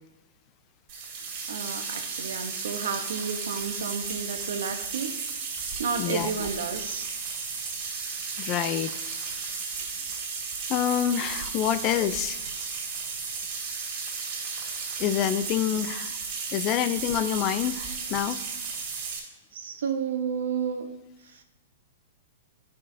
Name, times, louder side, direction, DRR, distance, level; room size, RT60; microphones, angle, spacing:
sound 1, 0.9-19.2, right 5 dB, 45° right, 2.4 m, -34 dB
voice 1, 1.5-5.1 5.8-7.1 15.7-15.8 19.5-20.9 21.2-21.4, right 6 dB, 80° right, 6 dB, 0.9 m, -32 dB
voice 2, 6.0-6.5 8.4-8.9 10.7-12.4 15.0-16.2 16.5-18.4, left 10 dB, 35° left, 13 dB, 0.4 m, -27 dB
10.0 x 5.2 x 2.7 m, 0.96 s
hypercardioid pair, 125°, 0 cm